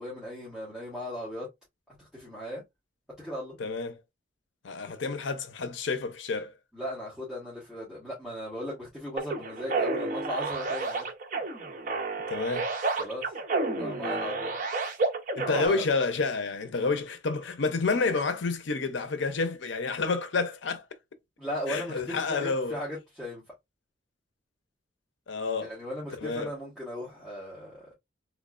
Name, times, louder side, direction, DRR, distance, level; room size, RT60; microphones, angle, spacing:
voice 1, 0.0-1.5 2.1-2.6 3.2-3.6 6.7-11.1 13.0-13.3 13.7-14.5 15.4-15.8 21.4-23.4 25.6-27.9, equal, 5° right, 1.5 m, -37 dB
voice 2, 3.6-4.0 4.6-6.5 12.3-12.7 15.4-20.8 21.7-22.7 25.3-25.7 26.2-26.5, left 4 dB, 75° left, 0.5 m, -29 dB
sound 1, 9.2-15.7, right 3 dB, 45° right, 0.7 m, -30 dB
3.5 x 3.1 x 2.4 m
head